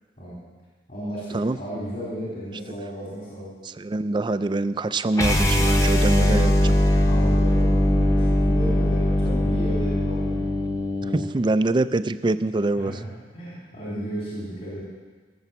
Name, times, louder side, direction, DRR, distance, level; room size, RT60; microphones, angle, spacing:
voice 1, 0.9-3.5 7.1-10.5 11.0-11.1 12.8-14.8, equal, 50° left, -8 dB, 3.9 m, -34 dB
voice 2, 3.8-6.7 11.3-12.9, right 2 dB, 25° right, 12 dB, 0.4 m, -24 dB
sound 1, 5.1-11.3, left 1 dB, 20° left, 1.0 m, -20 dB
17.0 x 7.0 x 7.1 m, 1.4 s
head